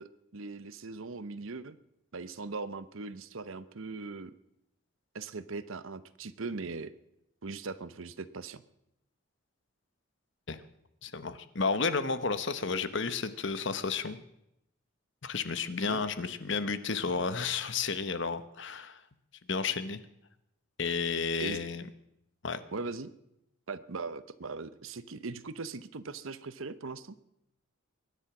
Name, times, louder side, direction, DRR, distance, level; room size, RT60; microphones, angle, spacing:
voice 1, 0.0-1.8 2.1-4.3 5.1-6.9 7.4-8.6 15.8-16.0 21.4-21.6 22.7-23.1 23.7-27.2, right 3 dB, 75° right, 15 dB, 0.8 m, -40 dB
voice 2, 11.0-14.2 15.2-19.0 19.5-20.0 20.8-21.8 22.4-22.6, left 4 dB, 55° left, 13 dB, 1.0 m, -32 dB
23.0 x 10.5 x 6.0 m, 0.82 s
head